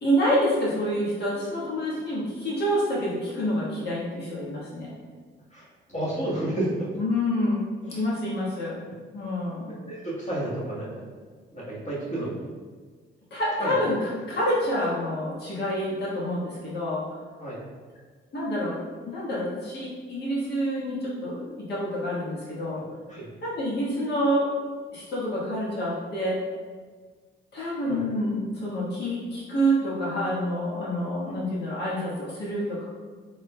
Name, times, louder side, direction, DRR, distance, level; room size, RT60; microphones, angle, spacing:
voice 1, 0.0-4.9 7.0-8.8 9.1-9.7 13.3-17.2 18.3-18.8 19.0-22.8 23.4-24.5 24.9-26.4 27.5-32.8, equal, 55° left, -6 dB, 1.4 m, -27 dB
voice 2, 5.5-6.9 7.9-8.0 9.8-11.1 11.5-12.4 13.6-13.7 17.4-17.6 23.1-23.3 27.9-28.0 31.2-31.3, right 1 dB, 35° left, -7 dB, 1.5 m, -31 dB
3.6 x 3.5 x 2.2 m, 1.5 s
cardioid pair, 90°, 20 cm